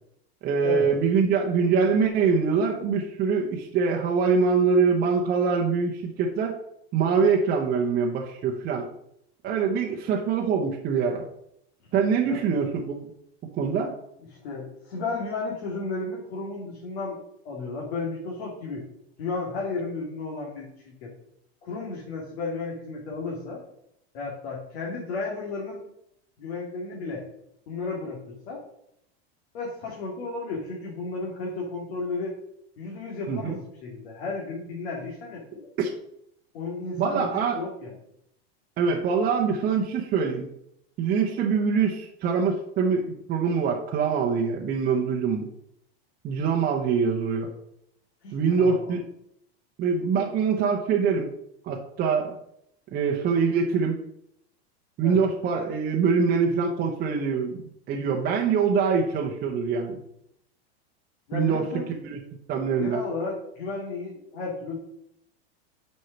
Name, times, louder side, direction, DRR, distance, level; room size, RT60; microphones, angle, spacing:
voice 1, 0.4-6.6 6.9-8.9 9.4-11.2 11.9-13.1 13.6-13.9 33.3-33.6 35.8-35.9 37.0-37.6 38.8-40.5 41.0-45.5 46.2-47.5 48.3-49.0 49.8-51.3 51.6-52.3 52.9-54.0 55.0-60.0 61.3-61.7 62.0-62.2 62.5-63.0, right 5 dB, 30° right, -1 dB, 0.9 m, -24 dB
voice 2, 14.4-17.2 17.4-18.8 19.2-21.1 21.6-23.6 24.1-25.8 26.4-27.2 27.7-28.6 29.5-32.3 32.8-35.7 36.5-37.9 48.2-49.0 55.0-55.2 61.3-61.9 62.8-64.8, left 3 dB, 70° left, -2 dB, 2.4 m, -33 dB
6.3 x 5.5 x 5.8 m, 0.76 s
supercardioid pair, 150°, 32 cm